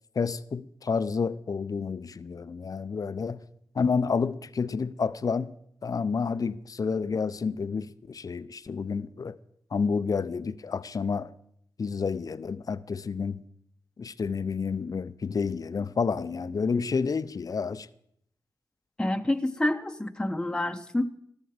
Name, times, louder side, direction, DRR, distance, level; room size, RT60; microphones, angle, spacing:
voice 1, 0.2-3.4 3.8-5.5 5.8-9.3 9.7-11.3 11.8-13.4 14.0-17.9, left 5 dB, 50° left, 0.6 m, -29 dB
voice 2, 19.0-21.1, left 1 dB, 10° left, 0.9 m, -28 dB
13.5 x 12.5 x 5.0 m
cardioid pair, 45°, 8 cm